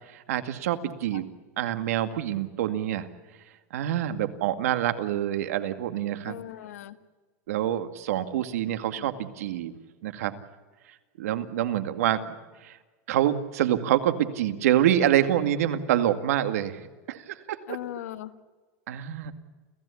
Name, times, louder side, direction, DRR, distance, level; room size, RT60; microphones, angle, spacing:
voice 1, 0.3-1.3 1.6-3.1 3.7-6.4 7.5-9.7 10.0-10.3 11.2-12.4 13.1-16.8 17.1-17.6 18.9-19.3, right 11 dB, 85° right, 9 dB, 2.1 m, -26 dB
voice 2, 6.2-7.0 8.4-8.5 8.9-9.2 17.7-18.3, left 13 dB, 85° left, 11 dB, 1.5 m, -39 dB
29.5 x 16.0 x 8.5 m, 1.3 s
supercardioid pair, 165°, 8 cm